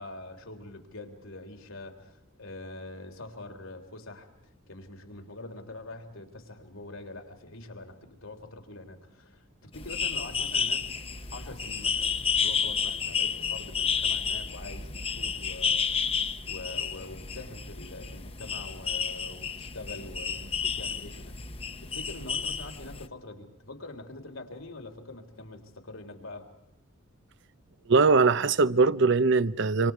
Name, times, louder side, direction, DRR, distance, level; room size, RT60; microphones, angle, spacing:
voice 1, 0.0-4.3 4.7-10.9 11.3-16.1 16.5-21.3 21.8-26.5, left 2 dB, 80° left, 3.5 m, -44 dB
sound 1, 9.7-23.1, left 6 dB, 30° left, 1.0 m, -31 dB
voice 2, 27.9-29.9, right 4 dB, 60° right, 0.8 m, -21 dB
27.5 x 26.0 x 4.7 m
head